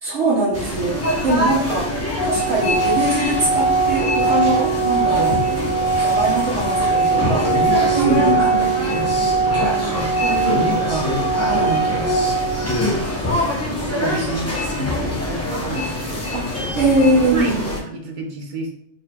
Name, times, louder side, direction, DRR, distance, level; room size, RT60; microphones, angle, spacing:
voice 1, 0.0-1.9 2.2-5.4 6.0-7.5 8.0-8.4 10.2-11.1 11.5-11.9 13.8-14.4 16.3-16.4 16.8-17.6, right 2 dB, 70° right, -6 dB, 1.3 m, -22 dB
sound 1, 0.5-17.8, left 1 dB, 15° left, 0.6 m, -25 dB
Organ, 2.2-13.2, right 4 dB, 55° left, 0.6 m, -21 dB
voice 2, 7.9-9.0 9.5-10.4 13.6-14.2 14.5-16.9 17.3-18.7, right 3 dB, 45° right, 2 dB, 0.8 m, -29 dB
5.0 x 3.1 x 2.2 m, 0.74 s
omnidirectional pair, 1.2 m